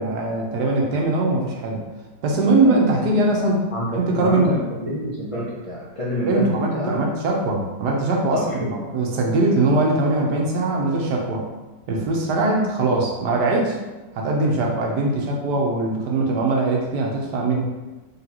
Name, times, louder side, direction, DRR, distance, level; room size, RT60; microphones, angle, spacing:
voice 1, 0.0-1.8 2.2-3.7 3.9-4.6 6.3-11.5 11.9-13.8 14.1-17.6, right 2 dB, 75° right, 0 dB, 1.3 m, -21 dB
voice 2, 2.6-3.1 3.7-7.0 8.3-8.7, equal, 40° left, -8 dB, 0.4 m, -28 dB
3.9 x 3.8 x 2.9 m, 1.2 s
omnidirectional pair, 1.9 m